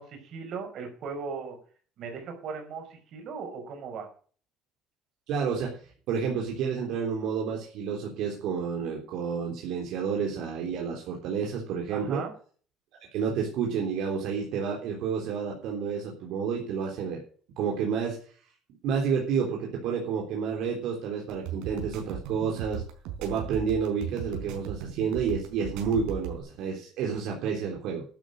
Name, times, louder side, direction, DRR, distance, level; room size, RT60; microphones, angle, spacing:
voice 1, 0.0-1.6 2.0-4.1 11.9-12.3, right 5 dB, 45° right, 5 dB, 5.1 m, -37 dB
voice 2, 5.3-5.8 6.1-12.2 13.1-17.2 17.6-18.2 18.8-22.8 23.2-28.0, right 6 dB, 60° right, 0 dB, 3.4 m, -30 dB
sound 1, 21.3-26.4, right 9 dB, 85° right, 4.7 m, -37 dB
12.0 x 8.3 x 6.4 m, 0.43 s
cardioid pair, 170°, 0 cm